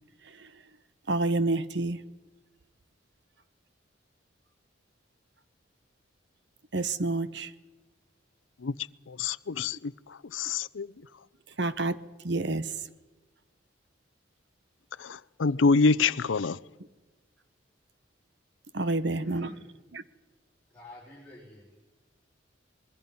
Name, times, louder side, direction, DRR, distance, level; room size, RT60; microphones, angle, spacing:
voice 1, 1.1-2.0 6.7-7.5 11.6-12.0 12.2-12.9 18.7-19.5 19.9-20.0, right 2 dB, 65° right, 1.0 m, -29 dB
voice 2, 9.1-10.9 15.0-16.6, left 4 dB, 85° left, 0.6 m, -26 dB
voice 3, 19.2-19.7 20.7-21.7, left 1 dB, 10° left, 5.4 m, -49 dB
26.0 x 22.0 x 5.5 m
head